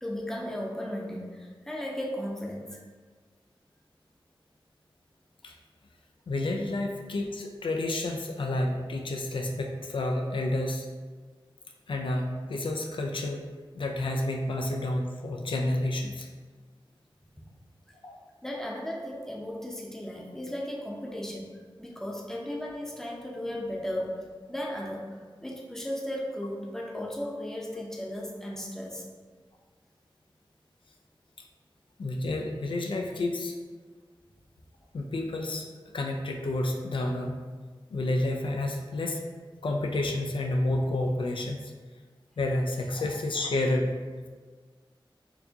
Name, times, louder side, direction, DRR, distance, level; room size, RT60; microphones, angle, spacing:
voice 1, 0.0-2.6 18.4-21.5 21.8-24.2 24.5-29.0, left 1 dB, 5° left, -2 dB, 0.6 m, -35 dB
voice 2, 6.3-10.9 11.9-13.4 13.7-16.3 18.0-18.2 32.0-33.5 34.9-35.7 35.9-37.4 37.9-39.2 39.6-41.7 42.4-43.9, left 1 dB, 70° left, 2 dB, 0.4 m, -30 dB
4.4 x 2.7 x 2.7 m, 1.5 s
wide cardioid pair, 75°, 9 cm